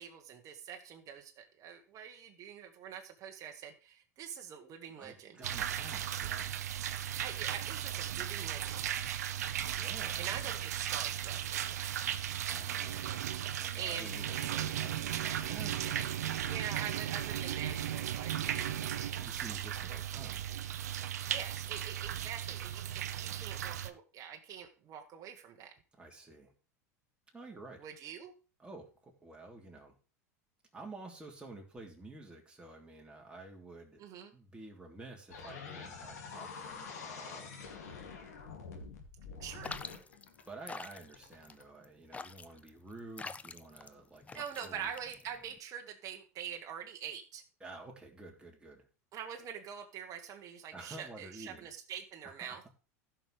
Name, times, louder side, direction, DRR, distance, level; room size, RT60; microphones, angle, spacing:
voice 1, 0.0-5.4 7.2-8.8 10.2-11.8 13.8-14.2 16.4-18.7 21.3-25.7 27.8-28.3 34.0-34.3 39.4-39.8 44.3-47.4 49.1-52.6, right 8 dB, 45° right, 3 dB, 1.3 m, -44 dB
voice 2, 5.0-6.6 9.7-10.6 12.5-13.2 13.6-16.1 19.2-20.4 26.0-26.5 27.3-27.9 28.6-30.0 30.7-34.0 34.3-37.5 40.5-44.9 47.6-48.9 50.7-51.7 52.2-52.6, right 2 dB, 10° right, 0 dB, 3.2 m, -50 dB
sound 1, 5.4-23.9, right 10 dB, 80° right, 0.7 m, -36 dB
sound 2, 35.3-41.6, left 5 dB, 80° left, 2.3 m, -46 dB
sound 3, 39.6-45.6, left 4 dB, 15° left, 0.6 m, -46 dB
15.5 x 6.0 x 3.2 m, 0.34 s
hypercardioid pair, 90°, 9 cm